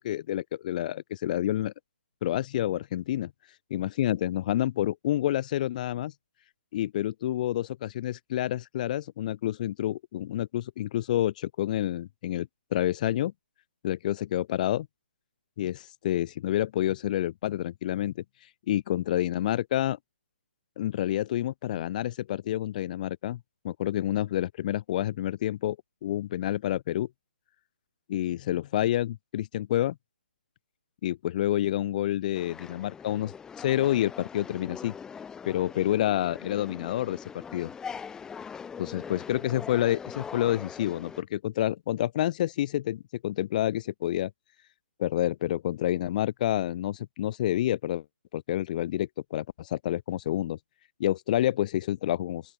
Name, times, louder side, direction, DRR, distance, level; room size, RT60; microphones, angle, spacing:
voice 1, 0.0-1.7 2.2-3.3 3.7-6.1 6.7-13.3 13.8-14.9 15.6-18.2 18.7-20.0 20.8-25.8 26.0-27.1 28.1-30.0 31.0-34.9 35.4-37.2 37.5-37.7 38.8-44.3 45.0-48.0 48.3-50.6 51.0-52.4, left 13 dB, 40° left, 6.5 m, -28 dB
sound 1, 32.3-41.2, left 6 dB, 10° left, 5.1 m, -42 dB
open air
hypercardioid pair, 140°, 6 cm